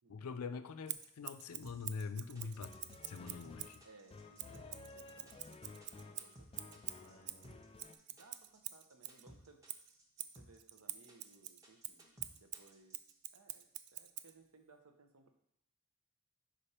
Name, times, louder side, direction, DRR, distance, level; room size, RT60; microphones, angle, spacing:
voice 1, 0.1-2.7 3.1-3.8, left 5 dB, 85° left, 11 dB, 0.5 m, -44 dB
Scissors, 0.9-3.8 4.4-9.2 9.7-14.3, right 13 dB, 50° right, 0.3 m, -47 dB
sound 1, 1.6-13.1, equal, 15° right, 1.0 m, -60 dB
voice 2, 2.2-2.5 3.8-7.7 8.1-9.6 10.4-13.0 13.3-15.3, right 3 dB, 80° right, 6 dB, 0.8 m, -64 dB
sound 2, 2.5-8.0, left 3 dB, 25° left, 0.4 m, -55 dB
5.2 x 5.1 x 4.2 m, 0.80 s
head